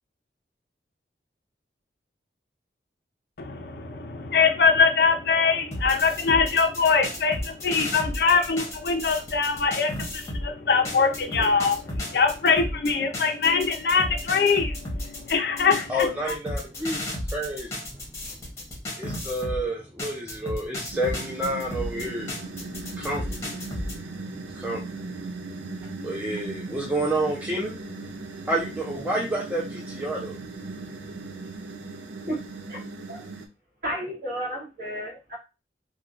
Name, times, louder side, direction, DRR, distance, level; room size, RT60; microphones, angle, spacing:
voice 1, 3.4-16.1, left 5 dB, 60° left, 5 dB, 0.5 m, -23 dB
sound 1, 5.7-10.5 10.8-19.6 20.0-24.0, left 1 dB, 15° left, 0.8 m, -33 dB
voice 2, 15.9-18.3 18.9-22.4 22.9-23.8 24.5-24.8 26.0-27.8 28.5-30.4, right 1 dB, 10° right, -4 dB, 0.4 m, -30 dB
sound 2, 20.9-33.5, right 3 dB, 85° right, 0.4 m, -38 dB
voice 3, 33.8-35.4, equal, 50° right, -4 dB, 1.3 m, -32 dB
3.1 x 2.2 x 2.4 m, 0.28 s
head